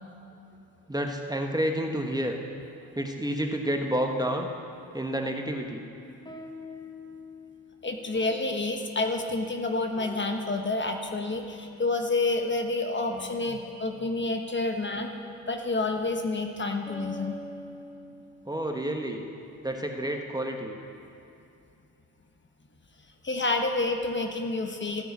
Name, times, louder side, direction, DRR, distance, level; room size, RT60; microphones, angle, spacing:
voice 1, 0.9-2.3 2.9-4.5 4.9-5.8 18.5-19.2 19.6-20.8, right 1 dB, 10° right, 3 dB, 1.2 m, -29 dB
sound 1, 5.9-9.6 10.0-11.4 13.1-18.9, left 1 dB, 10° left, 1.2 m, -46 dB
voice 2, 7.8-15.1 15.5-17.4 23.2-25.0, left 2 dB, 30° left, 4 dB, 1.2 m, -29 dB
14.0 x 6.2 x 8.3 m, 2.7 s
supercardioid pair, 65°, 37 cm